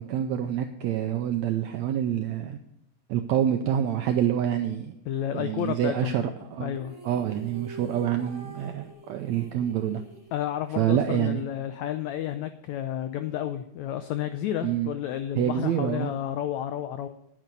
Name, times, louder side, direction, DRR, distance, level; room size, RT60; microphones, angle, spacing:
voice 1, 0.0-2.6 3.1-4.9 5.3-6.8 7.0-10.0 10.7-11.4 14.6-14.9 15.4-16.1, right 10 dB, 85° right, 6 dB, 1.6 m, -27 dB
voice 2, 5.1-6.2 6.6-6.9 10.3-17.1, left 11 dB, 85° left, 10 dB, 1.6 m, -31 dB
sound 1, 6.7-11.0, right 1 dB, 5° right, 3.1 m, -46 dB
9.7 x 9.1 x 5.3 m, 0.82 s
omnidirectional pair, 3.9 m